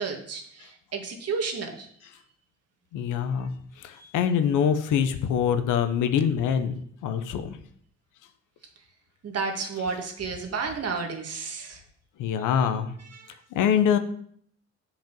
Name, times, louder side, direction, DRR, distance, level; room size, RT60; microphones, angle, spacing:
voice 1, 0.0-1.9 4.0-4.1 9.2-11.8 13.1-13.4, right 4 dB, 55° right, 3 dB, 1.7 m, -32 dB
voice 2, 2.9-3.5 3.8-6.7 7.0-7.6 12.2-12.9 13.5-14.0, left 8 dB, 85° left, 10 dB, 0.8 m, -24 dB
7.7 x 5.2 x 5.3 m, 0.63 s
cardioid pair, 90°, 30 cm